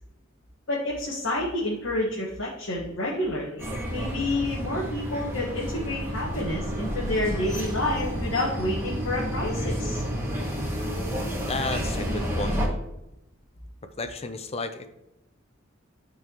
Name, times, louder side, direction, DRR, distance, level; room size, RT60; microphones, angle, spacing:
voice 1, 0.7-10.0, left 1 dB, 70° left, -5 dB, 1.6 m, -29 dB
sound 1, 3.6-12.7, equal, 15° right, 2.1 m, -30 dB
voice 2, 11.5-12.6 14.0-14.9, left 3 dB, 30° left, 9 dB, 0.6 m, -32 dB
12.5 x 4.6 x 3.0 m, 0.87 s
head